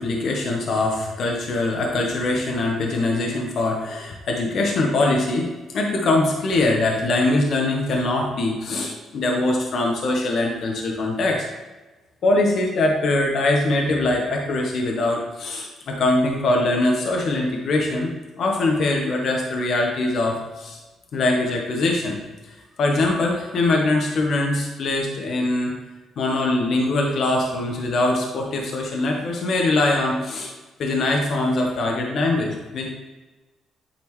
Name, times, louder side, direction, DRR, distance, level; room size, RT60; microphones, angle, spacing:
voice 1, 0.0-5.5 5.7-11.5 12.2-20.8 21.1-22.2 22.5-25.7 26.2-30.5 30.8-32.9, left 2 dB, 60° left, 1 dB, 1.0 m, -22 dB
8.7 x 4.2 x 3.1 m, 1.2 s
cardioid pair, 90°, 0 cm